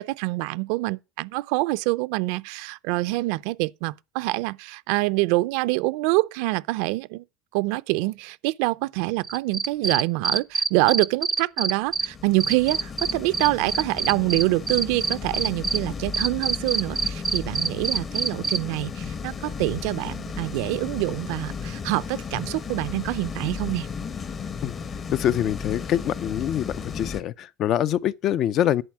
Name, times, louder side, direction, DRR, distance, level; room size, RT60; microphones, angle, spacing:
voice 1, 0.0-7.2 7.5-23.9, right 21 dB, 70° right, 0.5 m, -26 dB
Cricket, 9.2-12.1 12.4-15.8 16.1-18.6, right 5 dB, 15° right, 0.5 m, -25 dB
sound 1, 11.9-27.2, left 5 dB, 30° left, 0.9 m, -35 dB
voice 2, 25.1-28.8, left 11 dB, 45° left, 0.4 m, -24 dB
10.5 x 4.3 x 7.3 m
cardioid pair, 145°, 0 cm